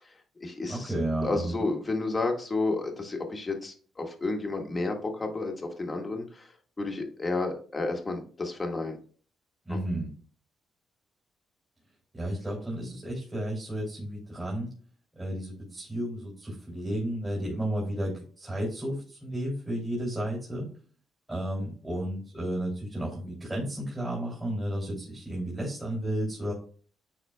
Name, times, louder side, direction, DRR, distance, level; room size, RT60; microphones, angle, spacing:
voice 1, 0.0-0.9 1.2-9.0 9.7-9.8, left 3 dB, 25° left, 3 dB, 1.8 m, -31 dB
voice 2, 0.7-1.6 9.6-10.1 12.1-14.7 15.1-20.7 21.3-26.5, right 1 dB, 15° right, -4 dB, 3.1 m, -32 dB
10.0 x 4.2 x 2.3 m, 0.42 s
cardioid pair, 90°, 0 cm